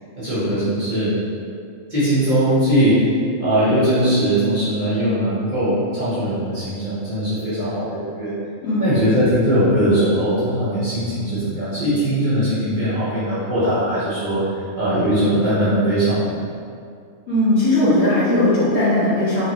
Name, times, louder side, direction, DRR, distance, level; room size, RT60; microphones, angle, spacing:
voice 1, 0.2-1.1 1.9-3.0 3.4-8.3 8.8-14.4 14.8-16.3, right 1 dB, 40° right, -12 dB, 0.9 m, -20 dB
voice 2, 17.3-19.5, left 1 dB, 65° left, -11 dB, 1.5 m, -18 dB
3.2 x 2.4 x 2.9 m, 2.3 s
omnidirectional pair, 1.5 m